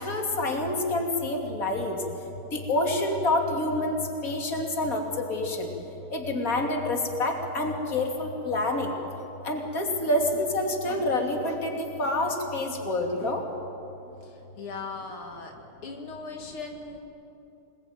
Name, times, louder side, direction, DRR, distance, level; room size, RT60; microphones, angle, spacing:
voice 1, 0.0-2.0 2.5-5.7 6.1-8.9 9.4-13.4, left 1 dB, 40° left, 2 dB, 3.3 m, -27 dB
voice 2, 14.2-15.5 15.8-17.0, left 4 dB, 75° left, 2 dB, 2.9 m, -38 dB
27.5 x 21.0 x 9.3 m, 2.9 s
omnidirectional pair, 2.4 m